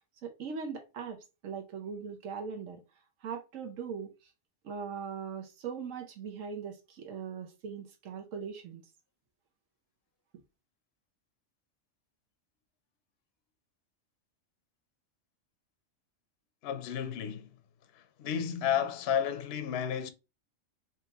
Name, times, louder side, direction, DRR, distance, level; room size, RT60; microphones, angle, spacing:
voice 1, 0.2-2.8 3.2-4.3 4.6-8.8, right 6 dB, 90° right, 1.2 m, -40 dB
voice 2, 16.6-17.6 17.9-20.1, left 8 dB, 60° left, 0.8 m, -32 dB
4.9 x 2.9 x 2.9 m
omnidirectional pair, 1.3 m